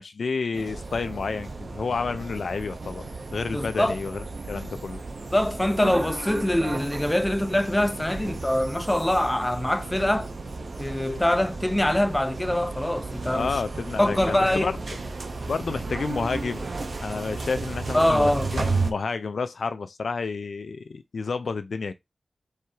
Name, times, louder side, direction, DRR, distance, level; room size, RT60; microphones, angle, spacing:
voice 1, 0.0-5.0 8.1-8.2 13.3-14.8 15.5-16.6 17.0-21.9, left 4 dB, 85° left, 0.4 m, -30 dB
sound 1, 0.5-18.9, right 3 dB, 70° right, 0.8 m, -34 dB
voice 2, 3.5-4.0 5.3-10.3 10.8-13.5 14.0-14.7 17.9-18.7, left 1 dB, 15° left, 0.6 m, -24 dB
4.6 x 3.2 x 3.4 m
cardioid pair, 50°, 0 cm